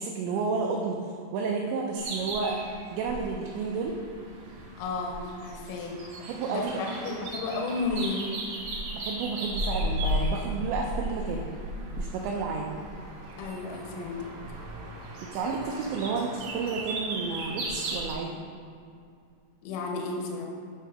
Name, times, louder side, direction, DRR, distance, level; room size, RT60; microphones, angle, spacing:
voice 1, 0.0-2.6 2.9-4.0 6.2-7.3 9.0-11.4 12.0-12.7 15.2-18.5, right 4 dB, 90° right, 0 dB, 2.5 m, -31 dB
sound 1, 2.0-18.1, equal, 75° right, 1.9 m, -36 dB
voice 2, 4.8-6.0 6.5-8.4 13.4-14.2 19.6-20.5, left 3 dB, 90° left, 0 dB, 2.2 m, -33 dB
9.1 x 3.7 x 5.5 m, 2.3 s
omnidirectional pair, 5.7 m